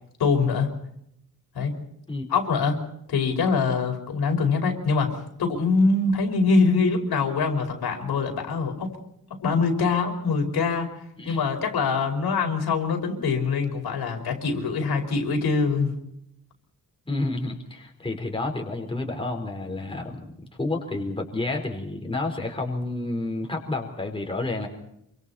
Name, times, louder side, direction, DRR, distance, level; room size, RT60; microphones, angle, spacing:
voice 1, 0.2-0.7 1.6-1.7 2.3-2.8 3.1-8.9 9.4-10.9 11.2-15.9, left 4 dB, 80° left, 3 dB, 5.3 m, -24 dB
voice 2, 17.1-20.2 20.6-24.7, left 2 dB, 15° left, 2 dB, 4.4 m, -30 dB
27.5 x 25.5 x 4.3 m, 0.75 s
wide cardioid pair, 140°, 37 cm